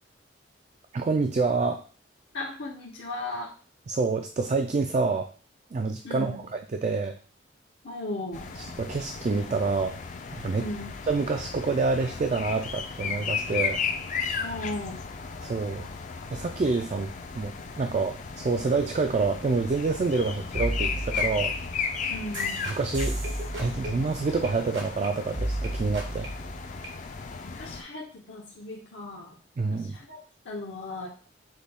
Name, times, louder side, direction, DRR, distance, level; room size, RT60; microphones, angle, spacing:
voice 1, 0.9-1.8 3.9-5.3 5.7-7.2 8.6-10.0 10.3-10.7 11.1-13.8 15.4-15.9 16.3-21.6 22.7-23.2 23.6-26.3 29.6-30.0, right 4 dB, 40° right, 5 dB, 0.3 m, -27 dB
voice 2, 2.3-3.5 6.0-6.4 7.8-8.5 10.6-11.0 14.4-15.1 22.1-22.7 27.4-29.4 29.7-31.1, left 2 dB, 80° left, -3 dB, 0.9 m, -37 dB
sound 1, 8.3-27.8, left 6 dB, 40° left, 0.4 m, -35 dB
sound 2, 20.2-20.3 20.5-24.5 24.7-25.1 25.3-26.9, right 1 dB, 85° right, 1.5 m, -33 dB
6.3 x 2.3 x 3.4 m, 0.38 s
head